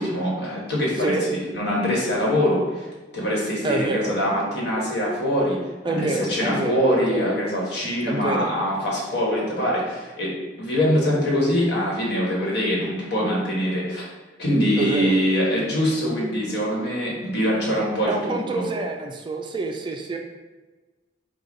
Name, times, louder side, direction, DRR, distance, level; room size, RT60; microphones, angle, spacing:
voice 1, 0.0-5.6 5.9-14.1 14.4-18.7, equal, 65° left, -4 dB, 1.3 m, -23 dB
voice 2, 3.6-4.1 5.8-7.3 8.1-8.5 14.8-15.1 18.1-20.2, right 3 dB, 25° right, 3 dB, 0.3 m, -27 dB
4.9 x 2.3 x 3.9 m, 1.2 s
head